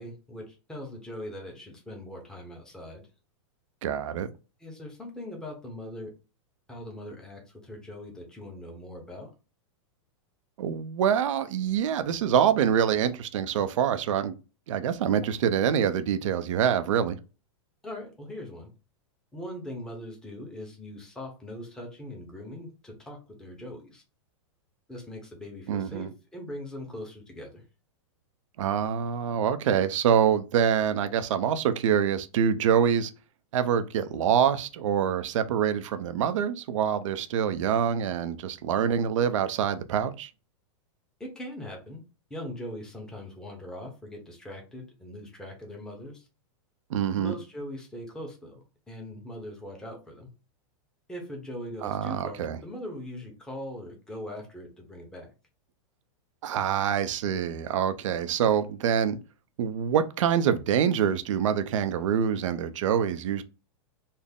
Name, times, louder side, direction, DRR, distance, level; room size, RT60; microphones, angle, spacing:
voice 1, 0.0-3.0 4.6-6.1 6.7-9.3 17.8-18.7 19.3-24.0 24.9-27.6 41.2-42.0 42.3-46.3 47.1-48.5 48.9-50.3 51.1-55.3, left 1 dB, 5° left, 0.9 m, -41 dB
voice 2, 3.8-4.3 10.6-14.4 14.7-17.2 25.7-26.1 28.6-33.1 33.5-40.3 46.9-47.3 51.8-52.6 56.4-59.2 59.6-63.4, right 8 dB, 75° right, 0.6 m, -25 dB
4.1 x 2.1 x 3.6 m
supercardioid pair, 140°, 16 cm